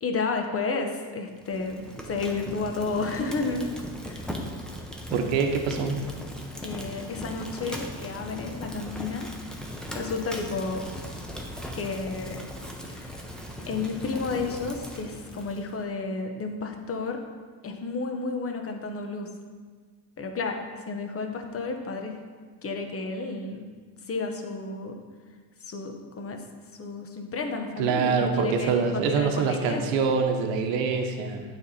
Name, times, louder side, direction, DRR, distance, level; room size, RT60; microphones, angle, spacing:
voice 1, 0.0-3.7 4.0-4.3 6.6-9.3 9.9-10.9 11.8-12.4 12.9-13.2 13.7-17.2 17.6-19.3 20.2-20.6 20.9-22.2 22.6-23.6 24.0-24.9 25.6-26.4 26.8-30.0, left 3 dB, 30° left, 4 dB, 0.9 m, -31 dB
Fire, 1.4-15.8, equal, ahead, 0.8 m, -38 dB
voice 2, 5.1-6.1 27.8-31.4, right 5 dB, 70° right, 4 dB, 0.9 m, -25 dB
8.7 x 3.5 x 4.2 m, 1.5 s
supercardioid pair, 95°, 46 cm